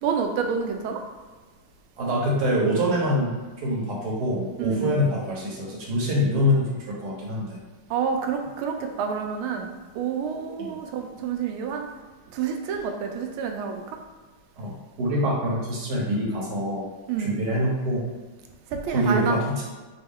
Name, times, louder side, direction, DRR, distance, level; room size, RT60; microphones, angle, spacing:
voice 1, 0.0-1.0 4.6-5.0 7.9-11.9 12.3-13.8 17.1-17.4 18.7-19.4, right 6 dB, 85° right, 4 dB, 1.4 m, -28 dB
voice 2, 2.0-7.6 10.6-10.7 14.6-16.9 17.2-18.1 18.9-19.6, equal, 60° right, -4 dB, 1.3 m, -25 dB
4.2 x 2.2 x 3.6 m, 1.3 s
omnidirectional pair, 2.3 m